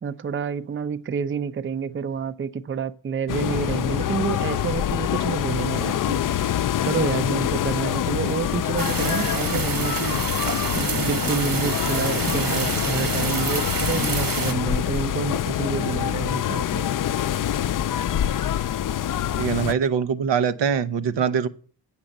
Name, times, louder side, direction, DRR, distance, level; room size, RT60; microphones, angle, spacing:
voice 1, 0.0-16.9, right 6 dB, 30° right, 0.5 m, -29 dB
sound 1, 3.3-19.7, left 11 dB, 50° left, 0.4 m, -25 dB
sound 2, 8.8-14.5, right 4 dB, 50° right, 1.4 m, -28 dB
voice 2, 19.4-21.5, right 7 dB, 85° right, 0.8 m, -23 dB
8.7 x 7.2 x 6.5 m
cardioid pair, 85°, 42 cm